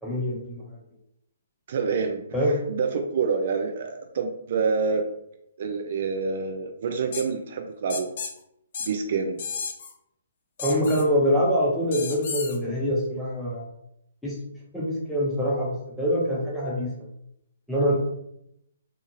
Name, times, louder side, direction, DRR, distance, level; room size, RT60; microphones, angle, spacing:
voice 1, 0.0-0.6 2.3-2.6 10.6-13.6 14.2-14.4 14.7-16.9 17.7-17.9, equal, 5° left, -5 dB, 0.8 m, -24 dB
voice 2, 1.7-5.0 5.6-8.1 8.8-9.5, right 5 dB, 55° right, 4 dB, 0.3 m, -27 dB
sound 1, 7.1-7.3 7.9-8.3 8.7-8.9 9.4-9.9 10.6-11.1 11.9-12.6, left 5 dB, 55° left, 0.4 m, -33 dB
2.5 x 2.5 x 2.7 m, 0.77 s
figure-of-eight pair, 135°, 0 cm